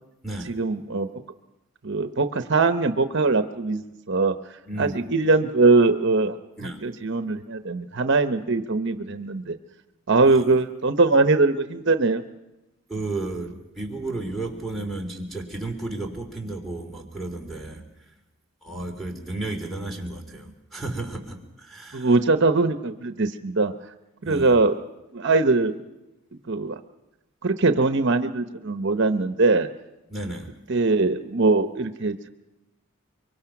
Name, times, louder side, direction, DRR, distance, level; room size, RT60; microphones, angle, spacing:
voice 1, 0.5-1.2 1.8-3.8 4.1-6.4 6.8-9.6 10.1-12.2 21.9-23.7 24.2-24.7 25.1-25.7 26.5-26.7 27.4-29.7 30.7-32.3, right 3 dB, 55° right, 9 dB, 0.8 m, -21 dB
voice 2, 4.7-5.0 6.6-6.8 10.2-10.4 12.9-17.8 18.6-22.1 24.2-24.6 30.1-30.6, right 2 dB, ahead, 2 dB, 3.0 m, -33 dB
24.0 x 24.0 x 5.9 m, 1.0 s
head